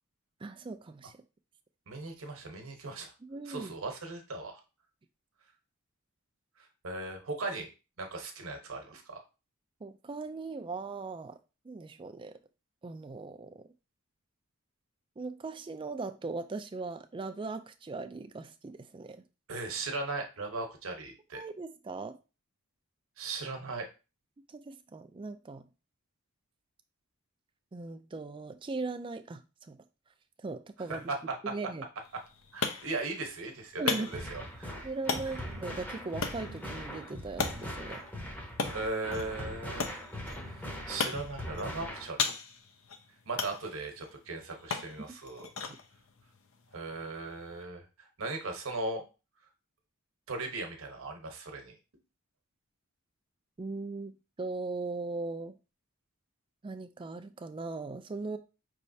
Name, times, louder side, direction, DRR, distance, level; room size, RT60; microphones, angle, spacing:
voice 1, 0.4-1.2 3.2-3.7 9.8-11.4 11.6-12.3 12.8-13.7 15.2-19.2 21.3-22.2 24.5-25.7 27.7-29.8 30.4-31.1 31.4-31.8 33.8-34.1 34.8-38.0 45.7-45.8 53.6-55.5 56.6-58.4, right 3 dB, 25° right, 0.3 m, -39 dB
voice 2, 1.9-3.1 3.5-4.6 6.6-7.7 8.0-9.2 19.5-21.4 23.2-23.9 30.9-31.4 32.5-34.7 38.7-39.9 40.5-42.3 43.3-45.5 46.7-49.0 50.3-51.7, right 3 dB, 70° right, 1.0 m, -38 dB
sound 1, 32.0-47.6, left 5 dB, 65° left, 0.6 m, -39 dB
sound 2, 34.1-42.1, equal, 10° left, 0.8 m, -41 dB
5.4 x 3.2 x 2.7 m
head